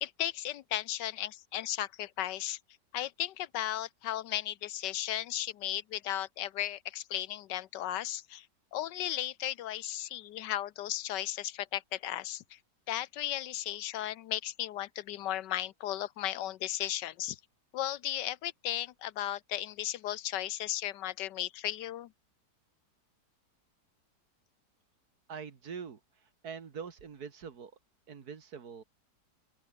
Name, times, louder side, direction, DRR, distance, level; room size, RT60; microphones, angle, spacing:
voice 1, 0.0-2.6 2.9-8.5 8.7-12.6 12.9-17.4 17.7-22.1, left 13 dB, 80° left, 1.4 m, -35 dB
voice 2, 25.3-26.0 26.4-27.7 28.1-28.8, right 6 dB, 60° right, 2.2 m, -43 dB
open air
omnidirectional pair, 1.9 m